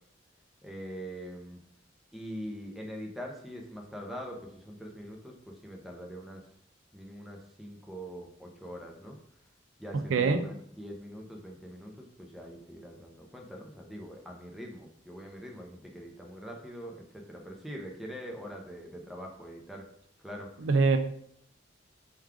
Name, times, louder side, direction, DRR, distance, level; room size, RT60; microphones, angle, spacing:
voice 1, 0.6-1.6 2.1-6.4 6.9-9.2 9.8-19.9 20.2-20.7, equal, ahead, 0 dB, 0.6 m, -43 dB
voice 2, 9.9-10.4 20.6-21.0, right 4 dB, 75° right, 8 dB, 0.4 m, -24 dB
4.6 x 2.3 x 3.6 m, 0.67 s
head